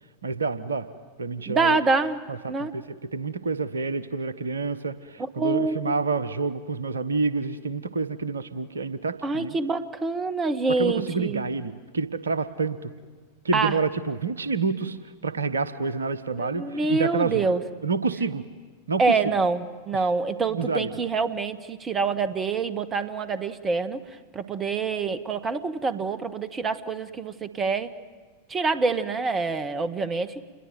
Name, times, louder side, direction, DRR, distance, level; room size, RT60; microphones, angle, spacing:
voice 1, 0.2-0.9 1.2-1.8 2.3-9.6 10.7-12.9 13.4-17.5 17.8-18.5 18.9-19.3 19.9-20.1 20.5-21.0, right 4 dB, 70° right, 15 dB, 1.2 m, -28 dB
voice 2, 1.5-2.2 2.5-2.7 5.4-5.9 9.2-11.4 13.5-13.7 16.4-17.6 19.0-24.0 24.3-27.9 28.5-30.4, right 4 dB, 20° right, 13 dB, 1.5 m, -26 dB
28.5 x 22.0 x 9.3 m, 1.5 s
figure-of-eight pair, 90°, 0 cm